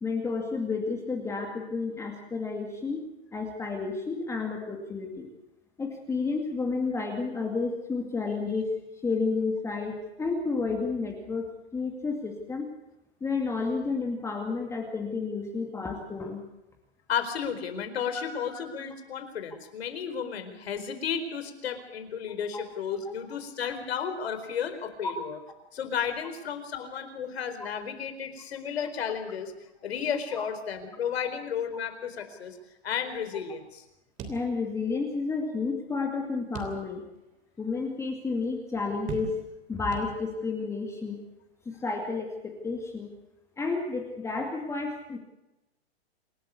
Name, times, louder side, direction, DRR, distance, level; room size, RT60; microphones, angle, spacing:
voice 1, 0.0-3.0 3.3-5.3 5.8-8.7 9.0-12.7 13.2-16.4 18.5-18.6 22.5-22.6 25.0-25.1 34.3-37.0 37.6-39.4 39.7-41.2 41.7-43.1 43.6-45.2, left 4 dB, 10° left, 2 dB, 2.3 m, -31 dB
voice 2, 17.1-25.4 25.7-29.5 29.8-32.6 32.8-33.8, left 7 dB, 65° left, 9 dB, 4.5 m, -33 dB
sound 1, 34.2-35.1 35.4-35.5 36.5-37.2 37.7-37.8 39.1-39.6 39.9-40.6, right 6 dB, 25° right, 3.3 m, -40 dB
27.5 x 12.5 x 8.5 m, 0.93 s
hypercardioid pair, 150°, 33 cm